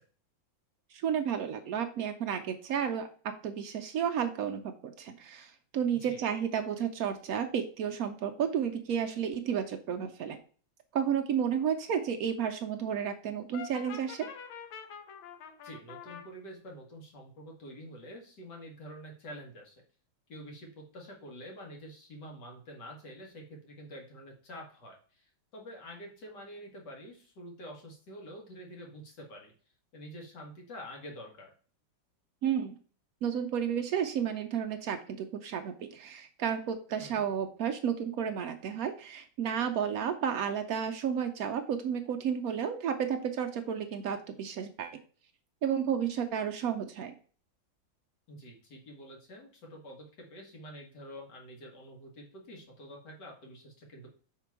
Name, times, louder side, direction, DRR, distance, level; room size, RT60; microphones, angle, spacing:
voice 1, 0.9-10.4 10.9-14.3 32.4-32.8 33.2-45.0 45.6-47.1, right 8 dB, 80° right, 5 dB, 0.8 m, -32 dB
Brass instrument, 13.5-16.3, left 8 dB, 90° left, 1.6 m, -45 dB
voice 2, 15.6-19.8 20.3-29.5 29.9-31.5 37.0-37.3 48.3-54.1, equal, 60° left, 0 dB, 2.1 m, -47 dB
5.9 x 3.7 x 4.6 m, 0.42 s
omnidirectional pair, 2.2 m